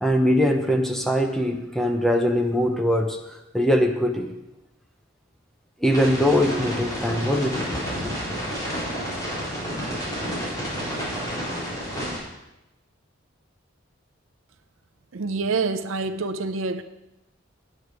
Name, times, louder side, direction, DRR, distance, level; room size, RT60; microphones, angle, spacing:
voice 1, 0.0-3.2 3.5-4.3 5.8-8.1, equal, ahead, 0.8 m, -22 dB
sound 1, 5.9-12.2, equal, 20° left, 4.5 m, -30 dB
voice 2, 15.1-16.8, right 4 dB, 80° right, 0.6 m, -26 dB
9.5 x 8.7 x 4.8 m
head